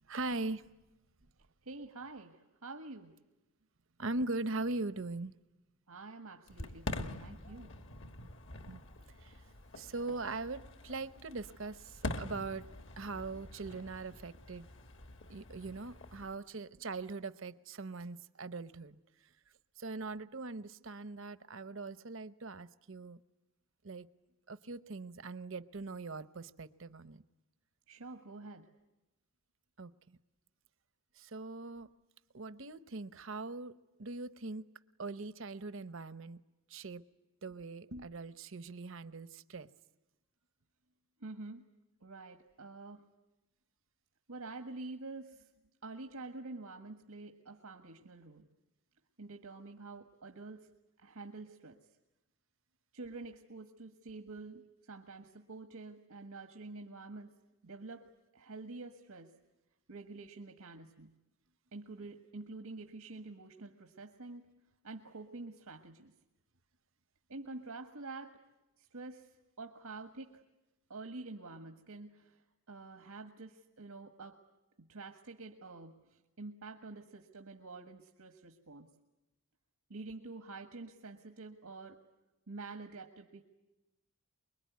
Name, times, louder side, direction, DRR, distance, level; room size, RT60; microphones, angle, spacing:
voice 1, 0.1-0.6 4.0-5.3 8.7-8.8 9.2-9.4 9.8-12.7 13.0-14.7 15.3-19.0 19.8-23.2 23.8-24.1 24.5-27.2 29.8-30.2 31.2-31.9 32.3-34.6 35.0-36.4 36.7-37.0 37.4-39.7, right 3 dB, 60° right, 14 dB, 0.8 m, -41 dB
voice 2, 1.6-3.1 5.9-7.8 27.9-28.7 41.2-41.6 42.0-43.0 44.3-45.5 45.8-48.5 49.2-50.7 51.0-51.8 52.9-57.3 57.6-58.1 58.3-59.3 59.9-61.1 61.7-64.5 64.8-66.1 67.3-68.4 68.8-70.4 70.9-72.4 72.7-74.4 74.8-78.9 79.9-82.0 82.5-83.4, right 3 dB, 90° right, 6 dB, 1.6 m, -48 dB
Fireworks, 6.5-16.3, left 2 dB, 55° left, 1.4 m, -45 dB
25.0 x 22.5 x 9.5 m, 0.99 s
head